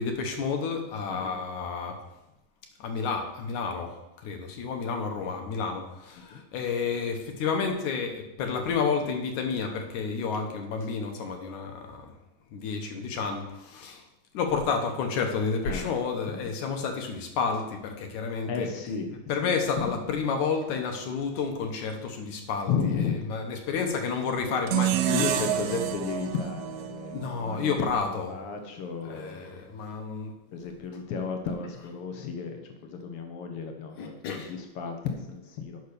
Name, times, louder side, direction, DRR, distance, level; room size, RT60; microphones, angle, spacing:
voice 1, 0.0-2.0 2.8-3.9 4.2-12.1 12.5-14.0 14.3-18.7 19.3-22.9 23.3-25.3 27.1-28.3 29.1-30.3 34.0-34.5, left 5 dB, 65° left, 4 dB, 2.2 m, -30 dB
voice 2, 15.6-16.0 16.3-16.5 18.5-19.2 19.4-19.9 22.7-23.2 25.1-29.6 30.5-34.1 34.5-35.8, left 5 dB, 85° left, 5 dB, 1.2 m, -33 dB
sound 1, 24.7-27.9, right 12 dB, 85° right, 1.6 m, -29 dB
8.5 x 5.6 x 6.7 m, 0.92 s
omnidirectional pair, 3.9 m